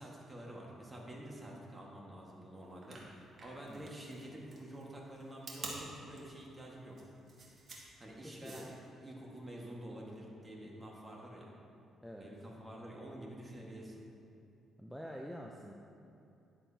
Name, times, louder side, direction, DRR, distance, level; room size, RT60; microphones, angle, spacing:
voice 1, 0.0-7.0 8.0-8.7 9.0-11.5 12.2-14.0, right 1 dB, 20° right, -3 dB, 1.6 m, -48 dB
sound 1, 2.7-8.9, right 3 dB, 45° right, 1.8 m, -49 dB
voice 2, 8.2-8.7 12.0-12.3 14.8-15.7, equal, ahead, -1 dB, 0.6 m, -47 dB
11.0 x 7.4 x 2.8 m, 2.7 s
cardioid pair, 90°, 0 cm